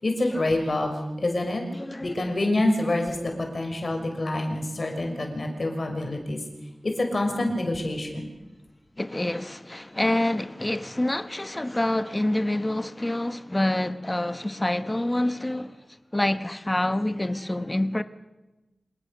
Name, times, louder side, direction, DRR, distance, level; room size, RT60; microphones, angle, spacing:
voice 1, 0.0-0.9 1.2-1.6 2.0-6.4 6.8-8.3, left 1 dB, 50° left, 5.9 m, -26 dB
voice 2, 1.7-2.2 9.0-18.0, left 1 dB, 20° left, 1.2 m, -27 dB
26.5 x 19.0 x 6.8 m
wide cardioid pair, 60°, 0 cm